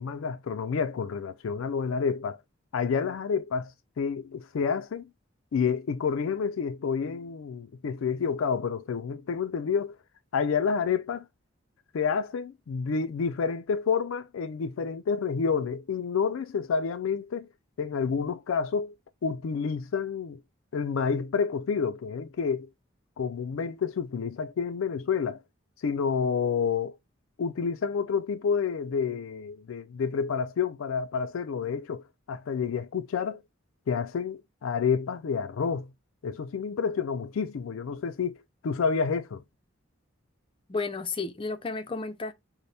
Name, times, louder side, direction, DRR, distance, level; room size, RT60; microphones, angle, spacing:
voice 1, 0.0-2.4 2.7-3.7 4.0-5.1 5.5-10.0 10.3-11.3 11.9-17.5 17.8-18.9 19.2-20.4 20.7-22.7 23.2-25.4 25.8-27.0 27.4-33.4 33.9-35.9 36.2-38.4 38.6-39.4, left 6 dB, 85° left, 0.4 m, -29 dB
voice 2, 40.7-42.3, left 3 dB, 25° left, 0.5 m, -32 dB
4.1 x 2.1 x 3.3 m
head